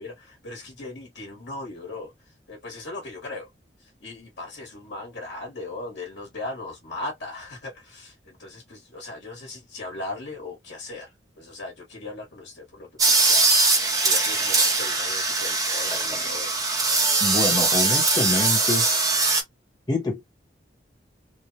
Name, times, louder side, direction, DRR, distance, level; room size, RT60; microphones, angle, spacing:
voice 1, 0.0-3.5 3.8-16.6, left 2 dB, 75° left, 1.2 m, -38 dB
sound 1, 13.0-19.4, right 3 dB, 20° right, 0.6 m, -21 dB
voice 2, 17.2-18.9 19.9-20.2, left 2 dB, 25° left, 1.0 m, -26 dB
3.1 x 2.1 x 2.5 m
head